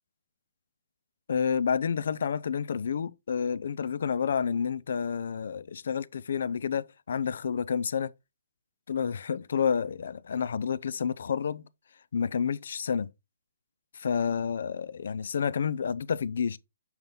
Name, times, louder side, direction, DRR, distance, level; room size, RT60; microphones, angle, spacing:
voice 1, 1.3-8.1 8.9-11.6 12.1-13.1 13.9-16.6, left 7 dB, 60° left, 0.4 m, -29 dB
7.0 x 4.0 x 3.7 m
figure-of-eight pair, 135°, 0 cm